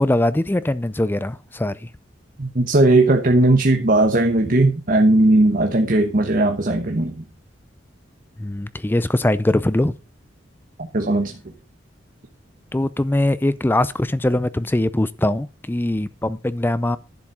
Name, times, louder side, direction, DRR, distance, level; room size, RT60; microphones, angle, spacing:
voice 1, 0.0-1.9 8.4-9.9 12.7-17.0, left 1 dB, 10° left, 0.4 m, -21 dB
voice 2, 2.4-7.2 10.9-11.4, right 2 dB, 50° right, 1.2 m, -17 dB
11.0 x 7.4 x 5.5 m
head